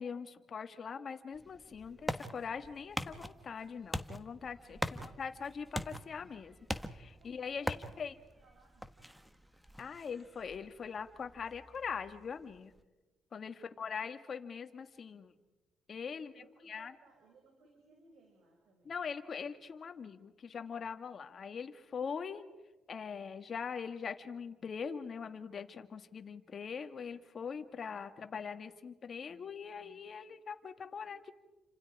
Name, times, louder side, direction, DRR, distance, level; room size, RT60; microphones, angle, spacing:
voice 1, 0.0-6.6 6.8-8.1 9.8-12.7 13.3-15.3 15.9-16.3 16.7-16.9 18.9-22.4 22.9-31.3, left 6 dB, 50° left, 7 dB, 1.8 m, -42 dB
sound 1, 1.3-12.8, equal, 5° right, 1.4 m, -43 dB
voice 2, 4.5-5.2 7.2-9.0 13.5-13.8 16.1-19.0, right 2 dB, 75° right, 1 dB, 6.1 m, -64 dB
30.0 x 26.0 x 4.9 m, 1.1 s
cardioid pair, 90°, 0 cm